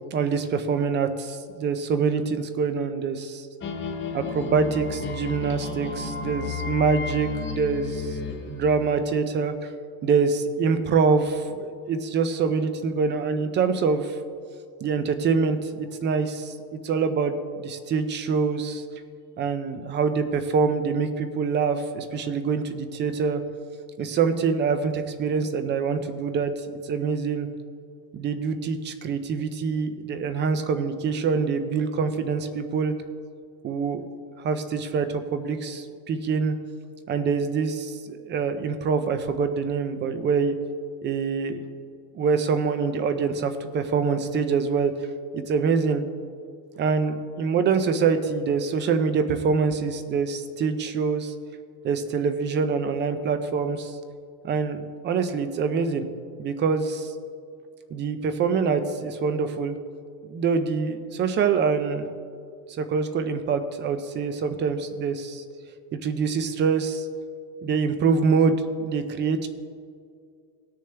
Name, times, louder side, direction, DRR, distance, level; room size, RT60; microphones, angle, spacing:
voice 1, 0.1-3.4 4.1-9.5 10.0-14.2 14.8-18.8 19.4-23.4 24.0-26.5 26.8-27.5 28.1-32.9 33.6-34.0 34.4-36.6 37.1-40.5 41.0-41.6 42.1-44.9 45.3-46.0 46.8-51.3 51.8-53.9 54.4-56.1 56.4-57.1 57.9-59.7 60.3-62.1 62.8-65.4 66.0-67.1 67.6-69.5, right 5 dB, 25° right, 9 dB, 0.4 m, -25 dB
sound 1, 3.6-9.2, left 5 dB, 25° left, 0.7 m, -33 dB
18.0 x 6.8 x 3.3 m, 2.3 s
cardioid pair, 155°, 49 cm